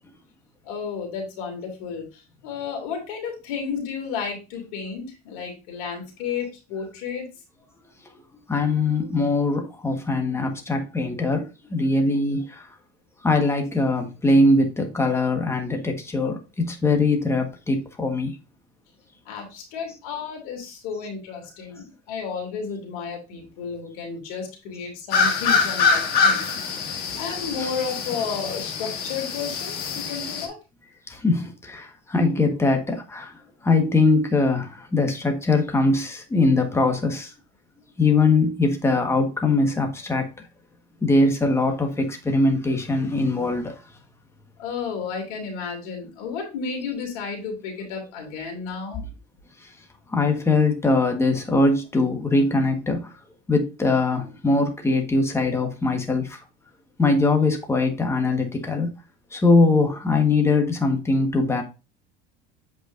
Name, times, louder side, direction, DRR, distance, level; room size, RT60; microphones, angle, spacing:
voice 1, 0.6-7.3 19.3-26.5 26.8-30.5 44.6-49.0, left 6 dB, 85° left, 2.7 m, -32 dB
voice 2, 8.5-12.7 13.2-18.3 27.1-27.2 27.6-27.7 31.1-37.3 38.0-40.3 41.0-43.7 50.1-53.1 53.5-56.4 57.0-58.9 59.3-61.6, left 3 dB, 15° left, 1.4 m, -22 dB
sound 1, 25.1-30.5, left 5 dB, 60° left, 1.7 m, -24 dB
7.9 x 5.0 x 2.6 m
supercardioid pair, 115°, 18 cm